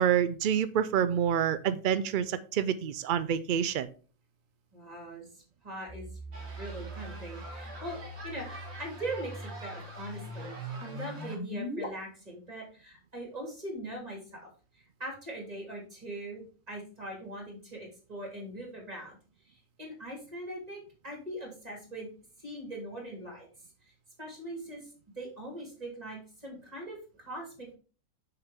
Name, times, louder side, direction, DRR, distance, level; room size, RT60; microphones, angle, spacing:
voice 1, 0.0-3.9, right 9 dB, 85° right, 14 dB, 0.4 m, -27 dB
voice 2, 4.7-5.3 5.6-14.5 14.7-19.2 19.4-22.1 22.4-23.5 24.2-24.9 25.1-27.8, right 1 dB, 25° right, -1 dB, 3.3 m, -41 dB
sound 1, 5.9-11.9, equal, 50° left, 2.6 m, -41 dB
sound 2, 6.3-11.4, right 2 dB, 50° right, 2.0 m, -47 dB
6.9 x 6.6 x 3.6 m, 0.37 s
omnidirectional pair, 1.5 m